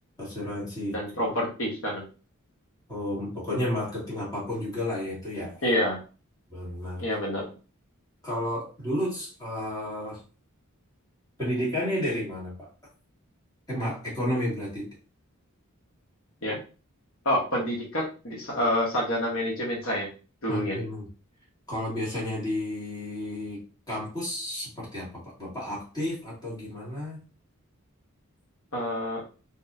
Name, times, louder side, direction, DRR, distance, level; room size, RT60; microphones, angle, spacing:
voice 1, 0.2-1.3 2.9-5.6 6.5-7.0 8.2-10.2 11.4-12.7 13.7-14.9 20.5-21.1 21.7-27.2, left 1 dB, 20° left, -7 dB, 2.2 m, -32 dB
voice 2, 0.9-2.0 5.6-6.0 7.0-7.4 16.4-16.6 17.2-20.1 20.4-20.8 28.7-29.2, left 1 dB, 70° left, -2 dB, 1.3 m, -27 dB
4.1 x 3.5 x 2.7 m, 0.35 s
head